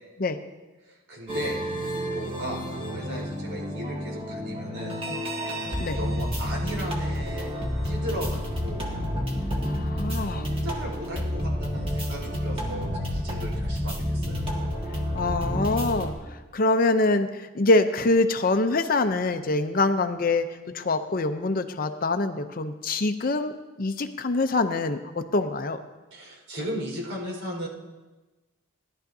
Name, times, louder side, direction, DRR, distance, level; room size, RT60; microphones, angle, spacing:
voice 1, 0.9-1.6 2.1-4.9 6.0-8.8 10.3-14.4 26.1-27.7, equal, 85° right, -2 dB, 4.6 m, -36 dB
sound 1, 1.3-16.1, equal, 25° right, 1.6 m, -30 dB
voice 2, 9.6-10.4 15.1-25.8, left 2 dB, 40° left, 9 dB, 0.6 m, -25 dB
17.5 x 11.5 x 2.7 m, 1.2 s
head